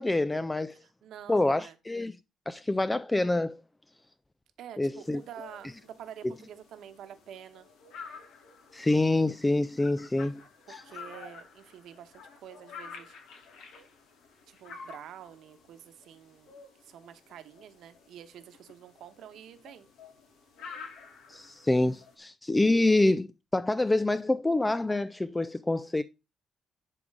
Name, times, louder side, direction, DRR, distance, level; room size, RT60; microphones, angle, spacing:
voice 1, 0.0-0.8 1.3-2.2 2.5-3.6 4.8-5.2 6.2-6.3 8.7-10.4 10.7-10.8 21.3-23.3 23.5-26.0, left 2 dB, 15° left, 0.3 m, -26 dB
voice 2, 0.7-1.8 4.6-7.7 10.7-13.1 14.5-16.5 16.8-19.9, right 9 dB, 75° right, 1.1 m, -48 dB
sound 1, 5.0-22.1, left 5 dB, 85° left, 2.2 m, -50 dB
11.0 x 3.6 x 4.8 m
cardioid pair, 105°, 0 cm